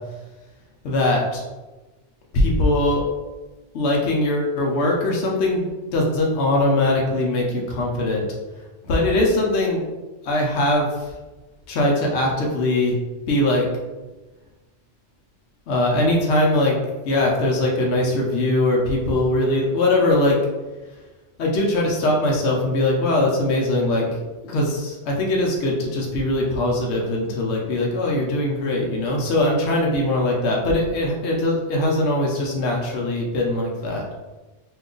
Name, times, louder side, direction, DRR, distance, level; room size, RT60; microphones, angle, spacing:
voice 1, 0.8-1.4 2.3-3.1 3.7-8.2 8.8-9.8 10.2-11.1 11.7-13.0 13.3-13.7 15.7-16.8 17.0-20.4 21.4-24.2 24.4-34.0, left 1 dB, 70° left, -2 dB, 0.9 m, -21 dB
2.8 x 2.3 x 3.7 m, 1.2 s
omnidirectional pair, 1.2 m